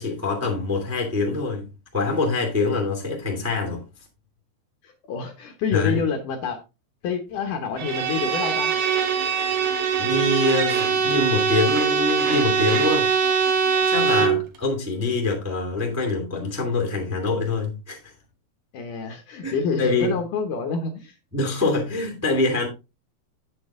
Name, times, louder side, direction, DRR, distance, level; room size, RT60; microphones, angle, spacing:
voice 1, 0.0-1.7 1.9-3.8 5.7-6.0 10.0-13.1 13.9-18.1 19.4-20.2 21.3-22.7, left 3 dB, 5° right, 1.5 m, -24 dB
voice 2, 4.8-6.6 7.0-8.7 14.2-14.4 18.7-21.2, left 5 dB, 65° left, 2.2 m, -28 dB
Bowed string instrument, 7.8-14.5, right 6 dB, 60° right, 2.1 m, -22 dB
8.7 x 7.7 x 3.6 m
omnidirectional pair, 4.5 m